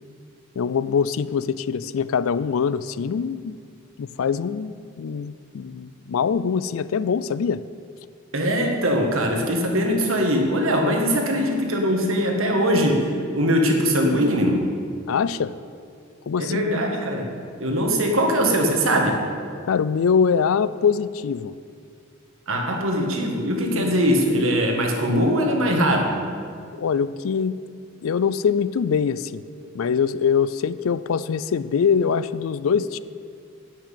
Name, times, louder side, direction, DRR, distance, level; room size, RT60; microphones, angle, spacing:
voice 1, 0.6-3.6 4.0-4.7 5.0-7.6 15.1-15.5 16.3-16.7 19.7-21.5 23.7-23.9 26.8-27.6 28.0-29.4 29.7-33.0, left 6 dB, 70° left, 16 dB, 0.4 m, -23 dB
voice 2, 8.3-14.6 16.4-17.3 17.6-19.2 22.5-26.2, equal, 70° right, 2 dB, 1.7 m, -21 dB
10.5 x 6.1 x 8.4 m, 2.2 s
head